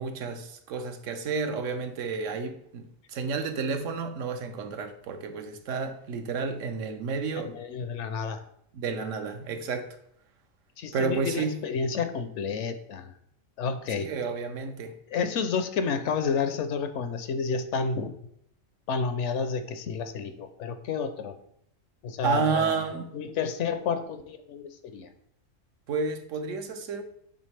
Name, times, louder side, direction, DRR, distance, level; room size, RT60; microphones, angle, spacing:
voice 1, 0.0-7.5 8.7-10.0 10.9-11.6 14.0-14.9 22.2-23.1 25.9-27.0, right 5 dB, 75° right, 1.0 m, -31 dB
voice 2, 7.4-8.4 10.8-13.1 13.6-14.1 15.1-18.1 18.9-21.4 22.0-22.7 23.1-25.1, left 5 dB, 70° left, 0.8 m, -30 dB
8.2 x 3.5 x 3.2 m
omnidirectional pair, 1.4 m